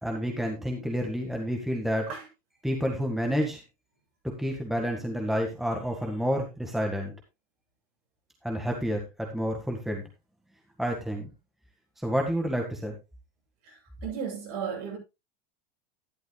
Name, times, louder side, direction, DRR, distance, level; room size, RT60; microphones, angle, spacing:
voice 1, 0.0-2.1 2.6-3.6 4.4-7.1 8.4-10.0 10.8-11.3 12.0-13.0, equal, ahead, 1.8 m, -29 dB
voice 2, 14.0-15.0, right 7 dB, 55° right, 7.7 m, -34 dB
13.0 x 12.0 x 2.3 m
supercardioid pair, 145°, 20 cm